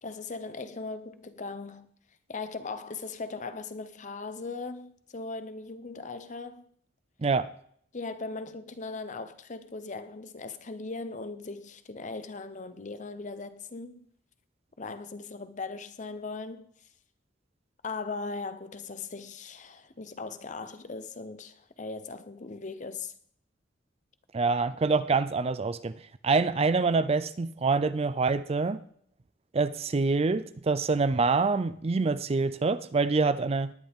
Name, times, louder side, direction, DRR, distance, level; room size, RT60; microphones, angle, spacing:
voice 1, 0.0-1.9 2.3-6.7 7.9-14.1 14.8-16.7 17.8-23.1, left 3 dB, 40° left, 0.8 m, -39 dB
voice 2, 24.3-26.0 26.2-28.8 29.5-33.7, right 4 dB, 30° right, 0.4 m, -26 dB
18.5 x 10.5 x 3.6 m
head